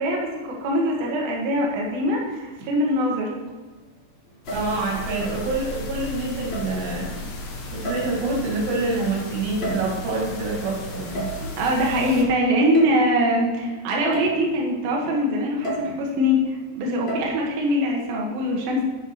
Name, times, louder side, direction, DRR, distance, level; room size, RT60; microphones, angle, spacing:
voice 1, 0.0-3.3 11.4-18.8, equal, 65° right, -2 dB, 3.1 m, -23 dB
sound 1, 4.3-4.8 5.2-5.5 6.5-6.8 7.8-8.3 9.4-10.1 11.1-11.5 12.7-12.9 13.4-13.5 14.1-14.5 15.6-16.0 17.1-17.3, right 2 dB, 25° left, 1.3 m, -31 dB
sound 2, 4.4-12.2, left 2 dB, 60° left, 2.7 m, -35 dB
voice 2, 4.5-7.2 7.7-11.3, right 3 dB, 90° right, -2 dB, 4.4 m, -26 dB
12.0 x 6.0 x 4.5 m, 1.3 s
omnidirectional pair, 4.8 m